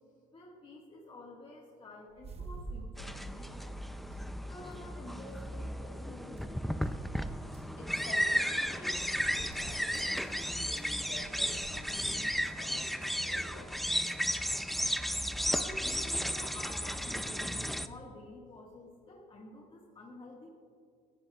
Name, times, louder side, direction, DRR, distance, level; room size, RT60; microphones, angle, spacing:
voice 1, 0.3-3.8 4.5-6.6 15.4-20.5, left 2 dB, 30° left, -3 dB, 1.7 m, -49 dB
sound 1, 2.1-18.0, right 3 dB, 35° right, 1.1 m, -50 dB
sound 2, 3.0-17.9, equal, ahead, 0.4 m, -34 dB
voice 2, 7.8-10.2 10.5-14.0, left 2 dB, 55° left, 1 dB, 3.0 m, -50 dB
24.0 x 11.0 x 2.4 m, 2.3 s
cardioid pair, 110°, 17 cm